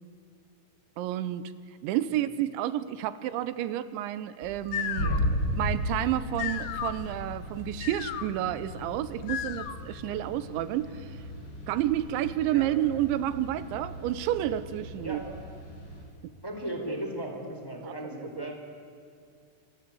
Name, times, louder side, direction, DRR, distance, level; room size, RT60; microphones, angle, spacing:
voice 1, 1.0-1.5 1.8-5.1 5.5-11.1 11.7-15.2 17.8-18.5, right 13 dB, 85° right, 14 dB, 3.3 m, -30 dB
sound 1, 4.4-10.0, left 10 dB, 70° left, 2.6 m, -37 dB
sound 2, 4.9-16.0, equal, 25° left, 5.9 m, -36 dB
voice 2, 14.9-15.4 16.4-18.5, right 1 dB, 5° left, 3 dB, 3.3 m, -37 dB
28.0 x 24.0 x 8.5 m, 2.4 s
omnidirectional pair, 5.2 m